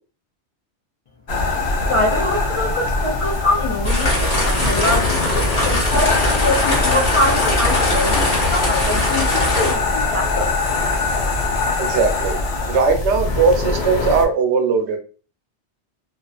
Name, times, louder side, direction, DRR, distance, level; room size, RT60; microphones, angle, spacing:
sound 1, 1.3-14.2, left 3 dB, 70° left, 0.9 m, -22 dB
voice 1, 1.9-10.5, left 1 dB, 55° left, -4 dB, 0.3 m, -24 dB
sound 2, 3.8-9.7, left 1 dB, 35° left, 1.1 m, -21 dB
voice 2, 11.8-12.4 12.7-15.0, right 5 dB, 85° right, 5 dB, 0.9 m, -18 dB
2.4 x 2.3 x 2.3 m, 0.38 s
omnidirectional pair, 1.1 m